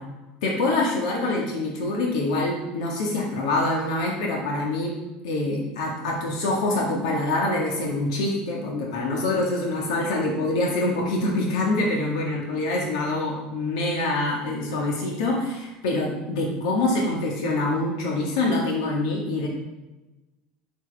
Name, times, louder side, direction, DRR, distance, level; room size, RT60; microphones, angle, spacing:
voice 1, 0.4-5.0 5.2-19.5, left 2 dB, 90° left, -1 dB, 1.7 m, -25 dB
9.5 x 6.2 x 3.5 m, 1.1 s
supercardioid pair, 125°, 3 cm